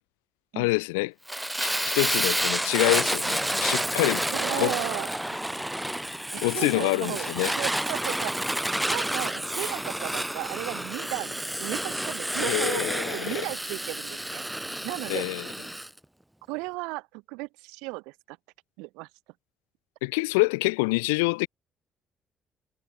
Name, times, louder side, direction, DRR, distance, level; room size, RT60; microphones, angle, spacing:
voice 1, 0.5-1.1 1.6-4.2 4.6-4.8 6.4-7.5 12.4-13.5 15.1-15.4 20.0-21.5, left 27 dB, 90° left, 1.1 m, -26 dB
Fire, 1.3-15.9, right 1 dB, 5° right, 4.5 m, -29 dB
voice 2, 4.3-5.1 6.3-7.3 7.6-8.5 8.9-12.9 13.1-14.4 14.8-15.2 16.5-18.4 18.8-19.1, right 27 dB, 80° right, 4.3 m, -35 dB
hypercardioid pair, 55°, 0 cm